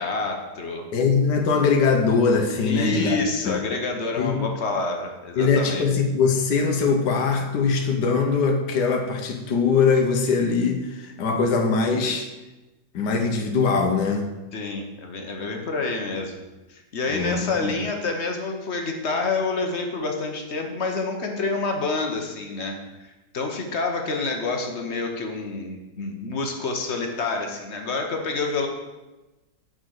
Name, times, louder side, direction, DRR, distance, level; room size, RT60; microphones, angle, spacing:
voice 1, 0.0-0.9 2.6-5.8 14.5-16.4 16.7-28.7, left 3 dB, 45° left, 3 dB, 1.2 m, -28 dB
voice 2, 0.9-3.2 3.5-3.6 4.2-4.5 5.4-12.3 12.9-14.3 17.1-17.7, left 5 dB, 85° left, 4 dB, 1.6 m, -22 dB
6.3 x 5.3 x 6.4 m, 1.1 s
omnidirectional pair, 1.8 m